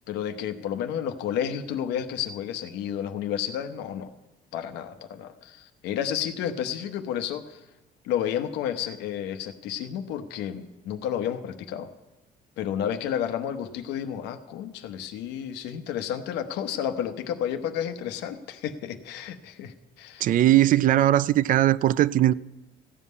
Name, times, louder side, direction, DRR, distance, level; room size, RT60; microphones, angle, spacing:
voice 1, 0.1-4.1 4.5-7.6 8.0-11.9 12.6-20.4, left 9 dB, 90° left, 0.9 m, -31 dB
voice 2, 20.2-22.3, right 13 dB, 55° right, 0.4 m, -19 dB
15.5 x 5.6 x 9.5 m
cardioid pair, 110°, 17 cm